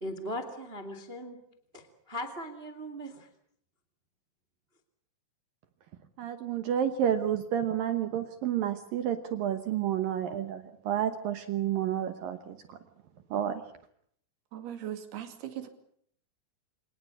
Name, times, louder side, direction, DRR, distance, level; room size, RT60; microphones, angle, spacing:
voice 1, 0.0-1.4 1.7-3.3, equal, 40° right, 10 dB, 0.8 m, -39 dB
voice 2, 6.2-12.8 13.3-13.6, right 10 dB, 80° right, 9 dB, 2.0 m, -30 dB
voice 3, 14.5-15.7, right 10 dB, 55° right, 8 dB, 4.0 m, -39 dB
27.0 x 19.0 x 8.5 m, 0.66 s
omnidirectional pair, 5.8 m